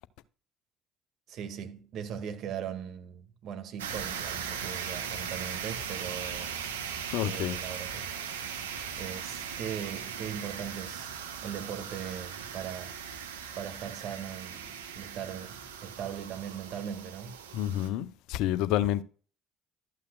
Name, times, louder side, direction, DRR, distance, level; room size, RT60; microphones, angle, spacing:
voice 1, 1.3-6.9 7.2-8.2 9.0-11.2 11.4-13.0 13.6-17.4, right 8 dB, 60° right, 2.0 m, -39 dB
sound 1, 3.8-17.9, right 7 dB, 90° right, 1.3 m, -38 dB
voice 2, 7.1-7.6 17.5-19.0, left 12 dB, 70° left, 0.6 m, -29 dB
12.5 x 8.4 x 2.4 m
hypercardioid pair, 55°, 0 cm